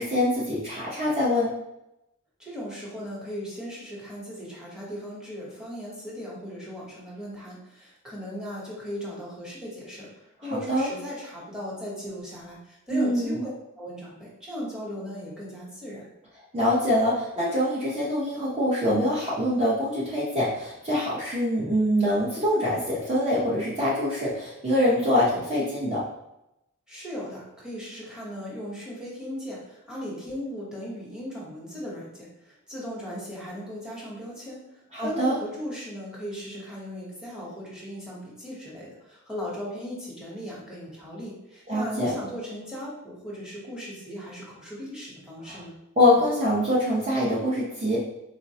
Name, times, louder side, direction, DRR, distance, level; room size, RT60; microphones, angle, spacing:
voice 1, 0.0-1.5 10.5-10.9 12.9-13.4 16.5-26.0 34.9-35.4 41.7-42.1 45.5-45.6 46.0-48.0, left 1 dB, 30° right, -7 dB, 0.5 m, -24 dB
voice 2, 2.4-10.1 10.4-13.5 13.8-16.0 26.9-45.7, equal, 5° right, -6 dB, 0.8 m, -37 dB
3.9 x 2.1 x 2.7 m, 0.88 s
head